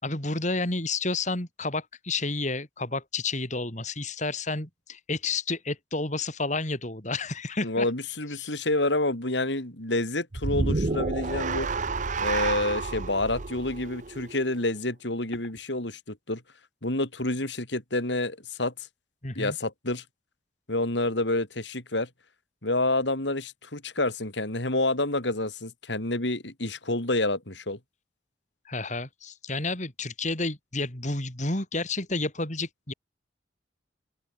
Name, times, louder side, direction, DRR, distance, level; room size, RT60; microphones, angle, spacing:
voice 1, 0.0-7.9 8.4-8.5 19.2-19.6 28.7-32.9, left 3 dB, 40° left, 4.2 m, -30 dB
voice 2, 7.6-11.7 12.2-16.4 16.8-18.7 19.3-20.0 20.7-22.1 22.6-27.8, left 2 dB, 70° left, 4.3 m, -28 dB
sound 1, 10.3-14.7, right 3 dB, 40° right, 0.8 m, -30 dB
open air
head